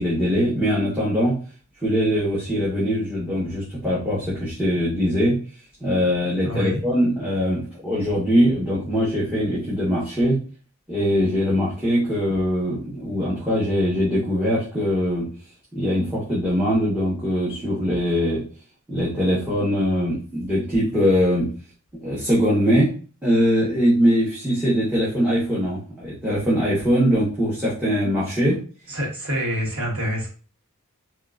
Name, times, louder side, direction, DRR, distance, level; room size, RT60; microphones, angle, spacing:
voice 1, 0.0-1.4 1.8-5.4 5.8-10.4 10.9-15.3 15.7-18.4 18.9-21.5 22.0-22.9 23.2-28.6, equal, 10° right, -9 dB, 1.1 m, -22 dB
voice 2, 6.4-6.8 28.9-30.3, equal, 70° right, -2 dB, 1.3 m, -26 dB
3.7 x 2.5 x 2.4 m, 0.38 s
head